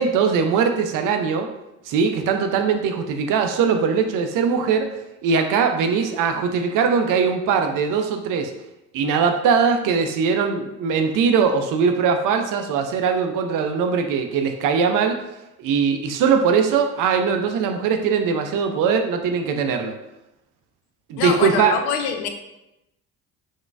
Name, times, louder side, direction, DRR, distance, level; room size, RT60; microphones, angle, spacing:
voice 1, 0.0-1.5 1.9-8.5 8.9-15.2 15.6-20.0 21.1-21.8, right 6 dB, 45° right, 6 dB, 0.4 m, -21 dB
voice 2, 21.2-22.3, left 7 dB, 55° left, 6 dB, 0.5 m, -24 dB
3.7 x 2.1 x 2.4 m, 0.90 s
figure-of-eight pair, 50°, 45 cm